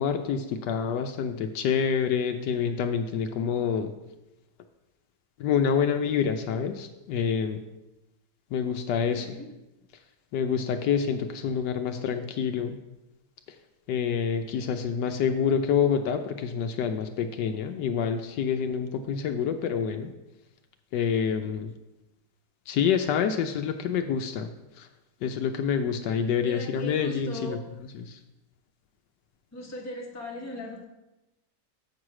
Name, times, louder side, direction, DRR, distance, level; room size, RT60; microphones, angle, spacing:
voice 1, 0.0-3.9 5.4-7.6 8.5-9.4 10.3-12.8 13.9-20.1 20.9-21.7 22.7-24.5 24.8-24.9 25.2-27.6 28.0-28.2, left 7 dB, 75° left, 7 dB, 1.1 m, -27 dB
voice 2, 9.0-9.5 26.4-27.6 29.5-30.8, left 1 dB, 10° left, -1 dB, 0.9 m, -38 dB
7.4 x 4.7 x 6.1 m, 0.99 s
omnidirectional pair, 2.0 m